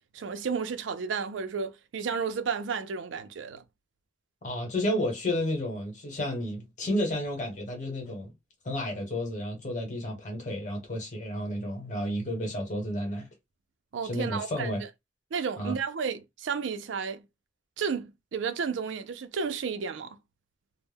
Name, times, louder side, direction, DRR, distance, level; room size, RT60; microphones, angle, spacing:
voice 1, 0.1-3.6 13.9-14.7 15.3-17.2 17.8-20.2, right 5 dB, 75° right, 0.4 m, -32 dB
voice 2, 4.4-8.3 8.6-13.3 14.0-14.8 15.6-15.8, left 1 dB, 40° left, 1.0 m, -31 dB
2.1 x 2.0 x 3.3 m
head